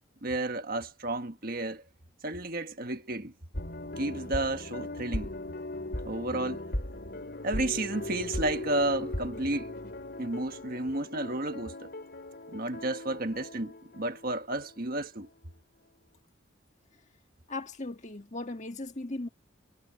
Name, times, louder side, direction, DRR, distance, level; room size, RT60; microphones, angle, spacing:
voice 1, 0.2-1.8 2.2-3.3 4.0-5.3 6.0-6.6 7.4-9.7 10.2-11.9 12.5-15.3, right 2 dB, 45° right, 1.5 m, -32 dB
sound 1, 3.5-15.0 15.2-15.3, left 1 dB, 50° left, 3.6 m, -38 dB
voice 2, 17.5-19.3, left 2 dB, 35° left, 1.7 m, -37 dB
head